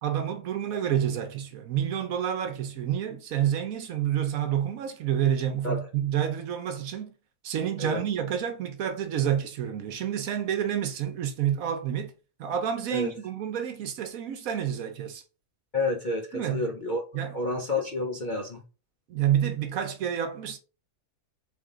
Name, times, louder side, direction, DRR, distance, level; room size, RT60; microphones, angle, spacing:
voice 1, 0.0-7.1 7.4-12.1 12.4-15.2 16.3-16.7 17.1-17.4 19.1-20.6, right 9 dB, 65° right, 1.1 m, -29 dB
voice 2, 15.7-17.0 17.3-18.6, left 2 dB, 45° left, 0.7 m, -29 dB
3.8 x 3.4 x 3.7 m
omnidirectional pair, 1.7 m